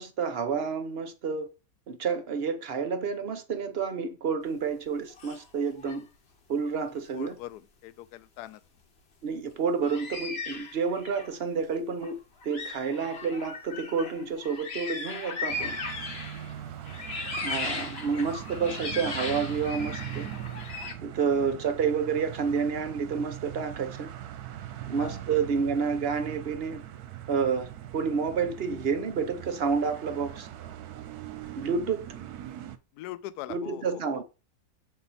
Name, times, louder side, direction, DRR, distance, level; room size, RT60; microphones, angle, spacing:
voice 1, 0.0-1.5 1.9-6.1 6.5-7.4 9.2-15.8 17.4-20.3 21.0-24.1 24.9-26.8 27.3-30.5 31.6-32.1 33.5-34.2, right 5 dB, 50° right, 0.7 m, -29 dB
sound 1, 5.1-5.4 5.8-6.0 6.9-7.0 9.8-11.3 12.0-12.1 12.4-16.5 16.9-20.9, left 3 dB, 40° left, 1.1 m, -37 dB
voice 2, 7.1-8.6 16.6-16.7 21.3-21.5 25.0-25.2 32.9-34.2, left 14 dB, 70° left, 1.0 m, -42 dB
sound 2, 15.5-32.8, right 11 dB, 65° right, 1.1 m, -41 dB
7.4 x 4.4 x 4.1 m
omnidirectional pair, 2.0 m